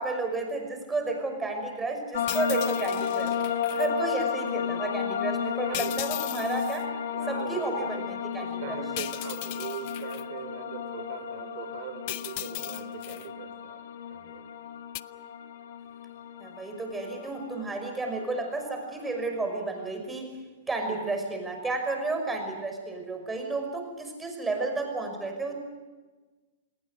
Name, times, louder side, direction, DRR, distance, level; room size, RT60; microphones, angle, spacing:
voice 1, 0.0-3.4 3.8-6.9 7.3-8.8 16.4-20.3 20.7-25.5, right 3 dB, 10° right, 4 dB, 5.8 m, -32 dB
sound 1, 2.1-19.9, left 8 dB, 75° left, 1.7 m, -33 dB
sound 2, 2.3-3.9 5.7-6.8 9.0-10.2 12.1-13.3 14.9-15.0, left 20 dB, 50° left, 0.7 m, -37 dB
voice 2, 5.6-6.0 7.1-8.1 8.4-13.8 14.1-14.5, right 9 dB, 55° right, 9 dB, 4.5 m, -41 dB
28.5 x 20.0 x 6.5 m, 1.3 s
hypercardioid pair, 135°, 0 cm